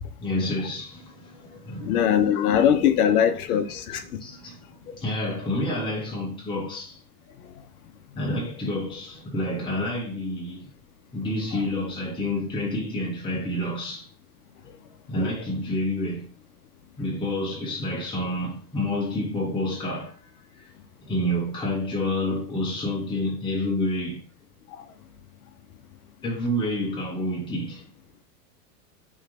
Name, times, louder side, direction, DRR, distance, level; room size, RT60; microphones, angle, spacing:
voice 1, 0.2-2.0 4.2-4.6 4.9-7.0 8.1-10.7 11.1-14.1 15.1-16.3 17.0-20.2 20.5-20.7 21.0-24.2 26.2-27.9, left 1 dB, 10° left, 1.2 m, -29 dB
voice 2, 1.8-4.0 11.5-11.6, left 9 dB, 65° left, 0.7 m, -21 dB
3.2 x 3.2 x 3.6 m
hypercardioid pair, 115°, 49 cm